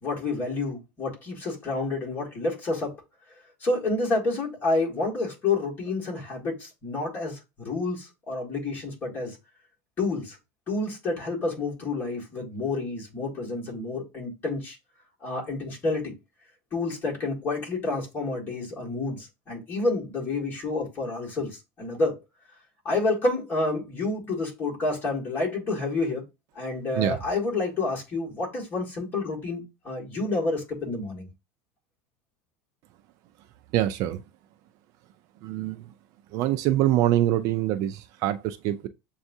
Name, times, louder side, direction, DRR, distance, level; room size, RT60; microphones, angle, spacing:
voice 1, 0.0-3.0 3.6-9.4 10.0-10.4 10.7-14.8 15.2-16.1 16.7-22.2 22.9-26.2 26.6-31.3, left 3 dB, 25° left, 1.7 m, -29 dB
voice 2, 33.7-34.2 35.4-35.8 36.3-38.9, right 13 dB, 45° right, 0.3 m, -24 dB
7.0 x 2.4 x 2.7 m
supercardioid pair, 160°, 8 cm